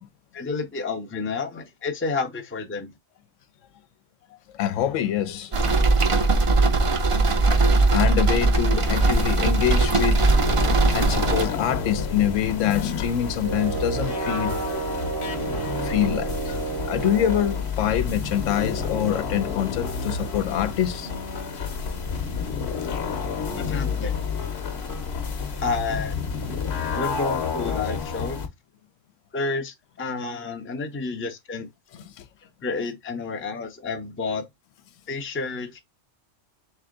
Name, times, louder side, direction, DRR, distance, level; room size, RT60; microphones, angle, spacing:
voice 1, 0.3-2.9 23.6-24.1 25.6-26.2 26.9-28.4 29.3-31.7 32.6-34.5 35.1-35.8, left 4 dB, 15° left, 0.5 m, -30 dB
voice 2, 4.5-5.6 7.9-10.3 10.9-14.6 15.4-15.5 15.8-16.6 16.8-21.1 31.9-32.3, left 10 dB, 80° left, 0.9 m, -25 dB
sound 1, 5.5-11.5, right 3 dB, 40° right, 0.5 m, -20 dB
sound 2, 8.8-28.5, left 5 dB, 60° left, 1.1 m, -30 dB
sound 3, 13.4-17.7, right 6 dB, 55° right, 1.0 m, -31 dB
3.4 x 3.3 x 3.7 m
omnidirectional pair, 1.3 m